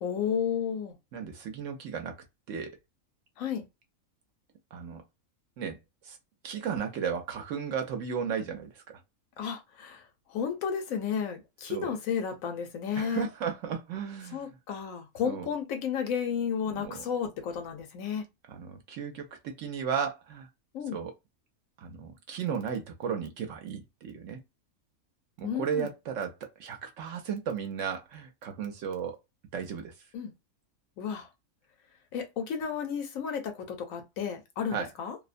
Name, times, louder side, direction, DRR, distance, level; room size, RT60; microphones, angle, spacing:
voice 1, 0.0-0.9 3.4-3.6 9.4-10.0 10.3-13.3 14.3-18.2 20.7-21.0 25.4-25.9 30.1-30.3 31.0-31.3 32.1-35.2, left 7 dB, 75° left, 1.0 m, -32 dB
voice 2, 1.1-2.2 2.5-2.7 4.7-5.0 5.6-5.8 6.0-6.2 6.4-9.0 11.7-11.9 12.9-14.6 15.2-15.5 16.7-17.0 18.5-20.5 20.9-21.1 21.8-24.4 25.4-26.3 26.6-29.2 29.5-29.9 34.7-34.9, right 7 dB, 65° right, 0.9 m, -34 dB
2.6 x 2.1 x 2.4 m
omnidirectional pair, 1.5 m